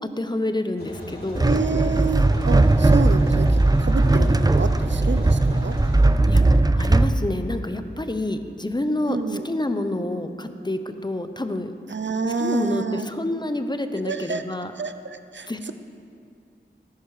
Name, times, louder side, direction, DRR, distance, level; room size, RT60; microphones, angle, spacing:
voice 1, 0.2-1.5 4.1-4.3 6.3-6.4 6.8-11.7 12.4-14.7 15.5-15.7, left 1 dB, 25° left, 8 dB, 0.8 m, -28 dB
sound 1, 0.8-6.0, left 1 dB, 55° left, 3.8 m, -38 dB
sound 2, 1.4-7.2, right 2 dB, 20° right, 0.5 m, -18 dB
voice 2, 1.4-5.7 9.1-9.5 11.9-13.1 14.0-14.4 14.8-15.7, right 4 dB, 75° right, 9 dB, 0.7 m, -28 dB
18.0 x 10.5 x 4.9 m, 2.4 s
wide cardioid pair, 60°, 19 cm